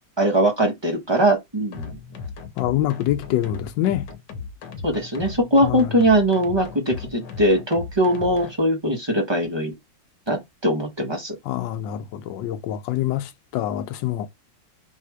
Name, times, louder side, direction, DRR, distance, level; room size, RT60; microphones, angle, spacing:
voice 1, 0.2-2.0 4.8-9.7 10.3-11.4, right 1 dB, 25° right, 0.6 m, -21 dB
sound 1, 1.7-8.5, left 5 dB, 70° left, 1.4 m, -36 dB
voice 2, 2.6-4.1 5.6-5.8 11.5-14.3, left 12 dB, 90° left, 1.3 m, -25 dB
4.1 x 2.7 x 4.6 m
omnidirectional pair, 2.0 m